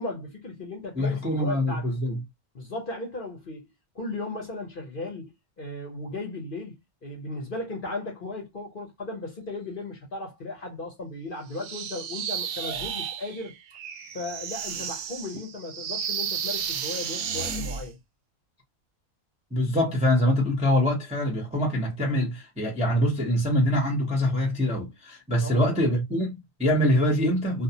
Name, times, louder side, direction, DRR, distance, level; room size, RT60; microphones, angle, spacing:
voice 1, 0.0-1.9 2.5-3.6 3.9-13.5 14.1-18.0 25.4-25.6, left 2 dB, 45° left, 0.8 m, -36 dB
voice 2, 0.9-2.2 19.5-27.6, left 1 dB, 5° right, 0.5 m, -24 dB
sound 1, 11.5-17.9, right 7 dB, 70° right, 0.8 m, -33 dB
2.5 x 2.0 x 2.7 m
omnidirectional pair, 1.5 m